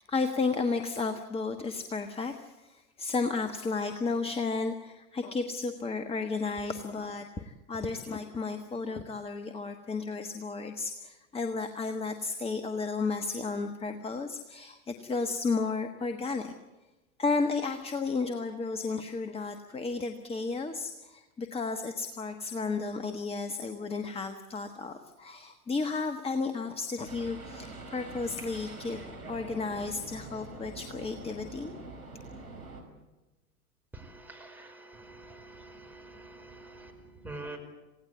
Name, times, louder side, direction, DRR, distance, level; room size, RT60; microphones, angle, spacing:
voice 1, 0.0-16.5 17.2-29.0 29.3-31.7, left 4 dB, 15° left, 7 dB, 1.3 m, -33 dB
sound 1, 27.0-32.8, right 3 dB, 80° right, 5.4 m, -44 dB
voice 2, 33.9-36.9 37.2-37.6, right 2 dB, 5° right, 1 dB, 5.1 m, -46 dB
27.5 x 17.0 x 8.4 m, 1.1 s
figure-of-eight pair, 90°, 43 cm